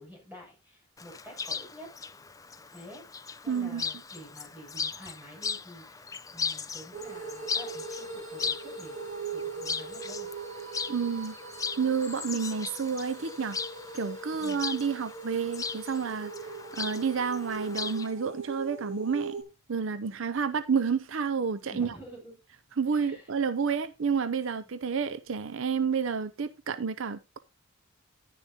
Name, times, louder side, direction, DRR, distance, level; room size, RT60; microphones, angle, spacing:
voice 1, 0.0-1.9 2.7-3.0 3.4-6.1 6.3-10.3 14.4-14.6 21.7-22.4 22.9-23.3, equal, 10° right, 6.9 m, -48 dB
Chirp tweet, 1.0-18.1, left 5 dB, 15° left, 0.5 m, -38 dB
voice 2, 3.5-3.8 10.9-11.4 11.8-13.6 13.9-19.4 19.7-22.0 22.8-27.4, right 6 dB, 65° right, 0.6 m, -30 dB
sound 1, 6.9-19.4, right 4 dB, 35° right, 3.7 m, -40 dB
10.5 x 10.0 x 2.8 m
head